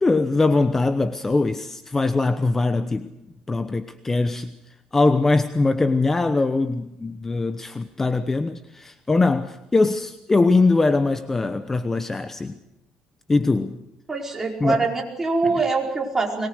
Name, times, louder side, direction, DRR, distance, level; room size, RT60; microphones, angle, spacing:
voice 1, 0.0-3.1 3.5-4.5 4.9-12.6 13.3-13.8 14.6-14.8 15.5-15.6, left 3 dB, 15° left, 0.9 m, -22 dB
voice 2, 14.1-16.5, right 3 dB, 15° right, 4.9 m, -24 dB
23.5 x 21.5 x 6.5 m
cardioid pair, 120°, 2 cm